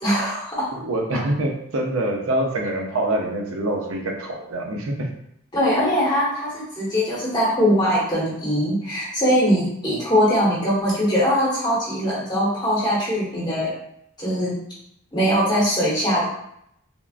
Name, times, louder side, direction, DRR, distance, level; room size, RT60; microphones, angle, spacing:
voice 1, 0.0-0.7 5.5-13.7 14.2-14.6 15.1-16.2, equal, 20° left, -8 dB, 1.2 m, -21 dB
voice 2, 0.7-5.1, right 1 dB, 80° right, 1 dB, 0.6 m, -25 dB
3.5 x 2.3 x 2.4 m, 0.74 s
head